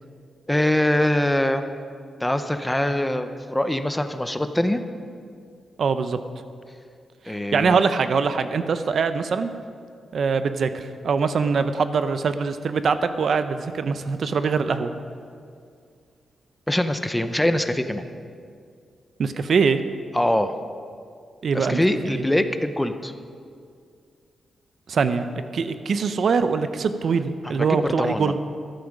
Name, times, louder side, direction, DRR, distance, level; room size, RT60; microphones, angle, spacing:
voice 1, 0.5-1.7 2.2-4.8 7.3-7.8 16.7-18.0 20.1-20.5 21.5-23.1 27.4-28.4, left 1 dB, 10° left, 9 dB, 0.7 m, -23 dB
voice 2, 5.8-6.2 7.3-9.5 10.1-14.9 19.2-19.8 21.4-22.2 24.9-25.3 25.5-28.4, right 5 dB, 60° right, 10 dB, 0.7 m, -23 dB
13.5 x 12.0 x 5.2 m, 2.3 s
wide cardioid pair, 120°, 0 cm